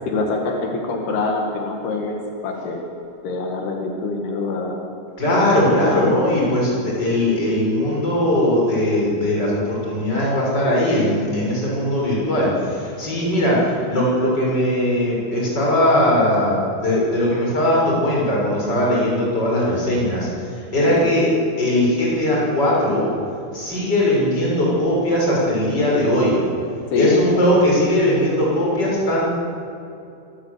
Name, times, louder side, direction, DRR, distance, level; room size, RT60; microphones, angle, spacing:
voice 1, 0.0-2.8 3.2-4.8 20.9-21.2 26.9-27.3, left 3 dB, 80° left, 1 dB, 4.0 m, -25 dB
voice 2, 5.2-21.3 21.6-23.1 23.5-26.4 27.0-29.3, left 1 dB, 25° left, -4 dB, 6.9 m, -19 dB
25.0 x 15.0 x 8.2 m, 2.7 s
omnidirectional pair, 4.5 m